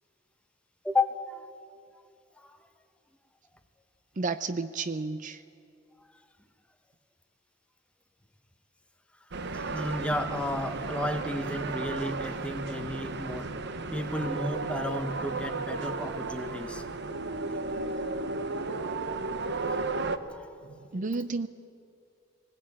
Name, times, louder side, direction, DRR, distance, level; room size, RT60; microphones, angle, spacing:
voice 1, 0.8-1.5 2.4-2.6 9.5-13.5 13.9-16.8 20.3-20.6, left 1 dB, 5° left, 6 dB, 1.2 m, -32 dB
voice 2, 4.2-5.4 20.7-21.5, right 3 dB, 40° right, 12 dB, 0.5 m, -32 dB
sound 1, 9.3-20.2, right 3 dB, 60° right, 0.9 m, -34 dB
20.0 x 19.0 x 8.6 m, 2.4 s
head